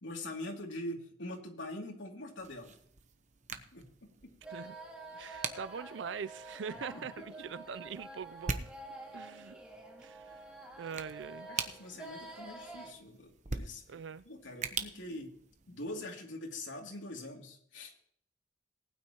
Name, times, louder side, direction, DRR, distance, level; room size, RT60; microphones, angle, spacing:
voice 1, 0.0-2.7 3.5-4.3 6.7-7.0 7.4-7.5 11.5-13.8 14.3-15.3 15.7-17.9, left 1 dB, 85° left, 2.7 m, -44 dB
sound 1, 2.4-16.0, right 4 dB, 40° right, 0.9 m, -44 dB
sound 2, 4.4-12.9, right 2 dB, 5° right, 2.1 m, -48 dB
voice 2, 5.1-8.7 9.1-9.6 10.0-10.4 10.8-11.5 13.9-14.3, right 6 dB, 75° right, 0.4 m, -43 dB
19.0 x 9.3 x 3.0 m
head